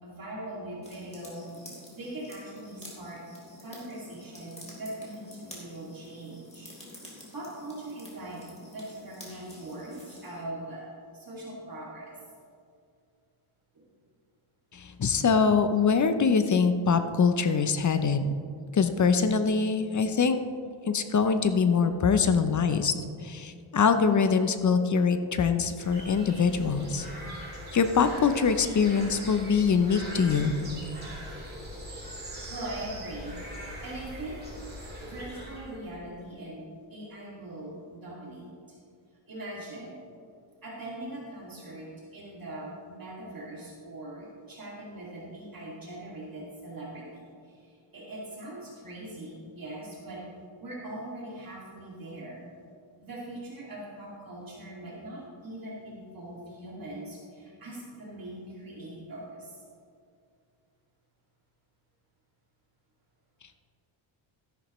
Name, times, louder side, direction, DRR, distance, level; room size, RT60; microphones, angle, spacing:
voice 1, 0.0-3.2 3.6-6.7 7.1-10.9 11.1-12.2 13.7-13.8 32.5-33.4 33.6-34.5 35.0-38.8 39.3-40.0 40.6-50.2 50.6-52.4 53.0-59.6, right 1 dB, 45° right, -5 dB, 2.3 m, -41 dB
sound 1, 0.8-10.4, left 1 dB, 15° left, 2.7 m, -49 dB
voice 2, 14.7-18.3 18.7-20.4 20.9-22.9 23.2-27.1 27.7-30.5, left 5 dB, 40° left, 9 dB, 0.6 m, -24 dB
sound 2, 25.8-35.8, equal, 20° right, 3.0 m, -41 dB
13.0 x 11.0 x 3.1 m, 2.3 s
wide cardioid pair, 150°, 50 cm